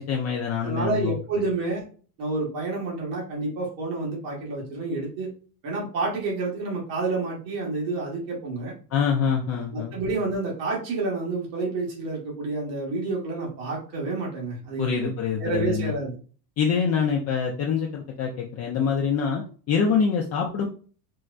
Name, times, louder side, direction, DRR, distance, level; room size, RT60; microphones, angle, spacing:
voice 1, 0.0-1.1 8.9-9.9 14.8-15.9 16.6-20.7, left 6 dB, 30° left, -1 dB, 0.5 m, -25 dB
voice 2, 0.6-1.8 2.2-5.3 5.6-8.7 9.7-15.1 15.4-16.2, right 3 dB, 85° right, -3 dB, 1.6 m, -29 dB
4.5 x 2.0 x 2.4 m, 0.40 s
supercardioid pair, 120°, 49 cm